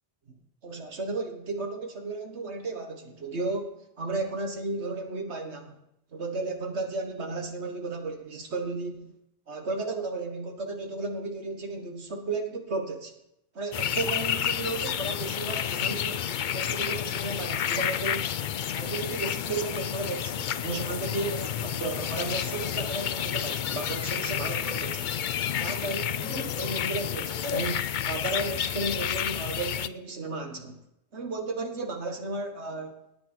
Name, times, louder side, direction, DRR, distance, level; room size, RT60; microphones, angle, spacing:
voice 1, 0.6-5.8 6.1-9.2 9.5-13.1 13.5-16.3 16.5-18.4 18.7-25.2 25.6-30.8 31.1-33.0, right 3 dB, 80° right, 4 dB, 1.8 m, -34 dB
sound 1, 13.7-29.9, left 9 dB, 55° left, 0.6 m, -30 dB
18.5 x 8.3 x 4.5 m, 0.82 s
omnidirectional pair, 1.1 m